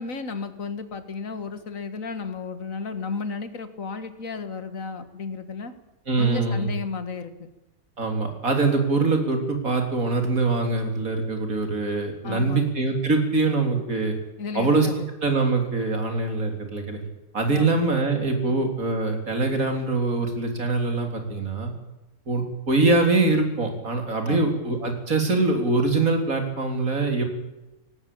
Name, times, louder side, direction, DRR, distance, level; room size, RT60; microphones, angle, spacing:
voice 1, 0.0-5.7 6.2-7.3 12.2-12.6 14.4-15.1 17.5-17.8 18.5-18.7 24.3-24.6, left 4 dB, 60° left, 10 dB, 2.2 m, -33 dB
voice 2, 6.1-6.7 8.0-14.2 14.5-14.9 15.2-17.0 17.3-21.7 22.3-27.2, right 3 dB, 65° right, 4 dB, 4.2 m, -23 dB
18.5 x 17.5 x 8.7 m, 1.0 s
omnidirectional pair, 1.6 m